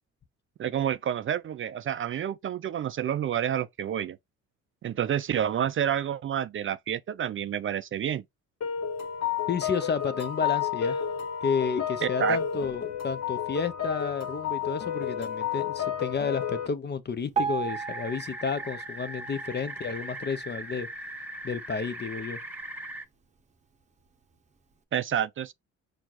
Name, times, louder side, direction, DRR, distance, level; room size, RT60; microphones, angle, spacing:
voice 1, 0.6-4.2 4.8-8.2 12.0-12.4 24.9-25.5, right 9 dB, 45° right, 0.4 m, -29 dB
sound 1, 8.6-16.7, left 9 dB, 55° left, 1.2 m, -31 dB
voice 2, 9.5-11.0 11.4-20.9 21.4-22.4, left 5 dB, 35° left, 0.8 m, -31 dB
Piano, 17.3-20.4 21.0-21.1 21.4-21.5 22.2-22.3 22.9-23.0, right 6 dB, 25° right, 0.9 m, -35 dB
sound 2, 17.7-23.0, right 1 dB, 5° right, 1.1 m, -39 dB
4.5 x 2.4 x 4.0 m
cardioid pair, 90°, 30 cm